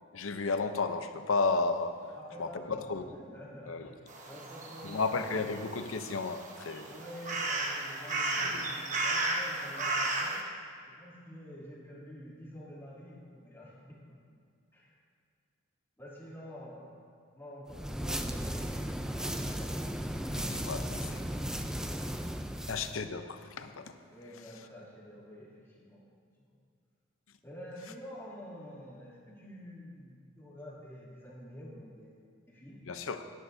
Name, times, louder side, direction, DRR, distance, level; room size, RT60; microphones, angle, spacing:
voice 1, 0.1-3.1 3.7-3.9 4.8-6.9 8.4-8.7 20.3-21.2 22.7-24.0 32.9-33.2, left 4 dB, 80° left, 8 dB, 0.7 m, -33 dB
voice 2, 2.1-4.0 4.3-5.5 6.9-10.4 11.0-14.2 14.7-14.9 16.0-17.0 17.3-19.7 20.7-22.4 24.1-25.5 25.8-26.0 26.5-26.6 27.4-32.8, equal, 10° left, -8 dB, 2.9 m, -48 dB
sound 1, 4.1-10.4, right 2 dB, 35° right, 1.1 m, -34 dB
sound 2, 17.7-23.0, equal, 5° right, 0.4 m, -35 dB
18.0 x 10.5 x 2.7 m, 2.3 s
head